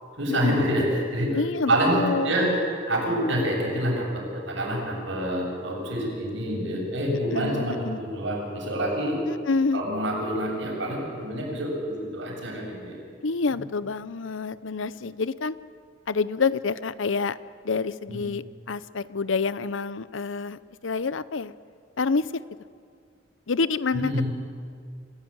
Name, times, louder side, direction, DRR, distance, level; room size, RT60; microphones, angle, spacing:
voice 1, 0.2-0.9 1.1-1.4 1.7-2.5 2.9-4.1 4.3-9.2 9.7-13.0 13.5-13.6 18.1-18.2 23.9-24.3, equal, 75° right, -1 dB, 7.4 m, -27 dB
voice 2, 1.3-2.3 7.3-8.0 9.3-9.8 13.2-15.6 16.1-17.4 17.6-21.5 22.0-22.3 23.5-24.1, left 4 dB, 80° left, 16 dB, 0.7 m, -27 dB
27.0 x 15.5 x 8.8 m, 2.2 s
head